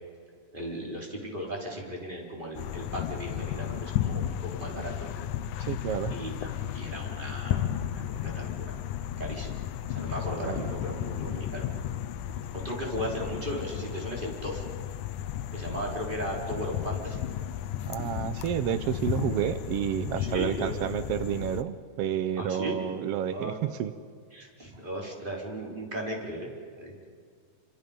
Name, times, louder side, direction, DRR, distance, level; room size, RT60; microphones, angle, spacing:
voice 1, 0.5-5.1 6.1-7.6 7.9-8.8 9.2-9.6 9.9-11.7 12.5-14.6 15.5-17.2 20.2-20.7 22.4-22.8 23.3-23.7 24.3-26.5 26.8-26.9, equal, 15° right, -1 dB, 4.2 m, -36 dB
sound 1, 2.5-21.6, left 11 dB, 75° left, 2.2 m, -34 dB
voice 2, 5.6-6.1 10.5-10.6 17.9-23.9, right 10 dB, 85° right, 12 dB, 1.3 m, -30 dB
28.5 x 26.0 x 5.3 m, 2.1 s
omnidirectional pair, 3.7 m